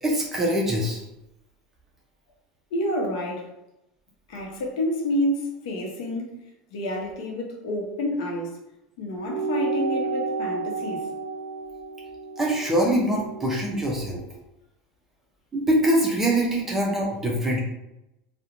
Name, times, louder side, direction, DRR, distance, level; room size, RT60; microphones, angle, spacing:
voice 1, 0.0-1.0 12.4-14.2 15.5-17.6, right 1 dB, 10° right, 0.4 m, -23 dB
voice 2, 2.7-3.5 4.3-6.4 6.7-8.6 9.0-11.1, left 1 dB, 70° left, 0.7 m, -29 dB
sound 1, 9.2-14.1, right 4 dB, 80° right, 0.4 m, -31 dB
2.4 x 2.0 x 2.8 m
supercardioid pair, 175°, 4 cm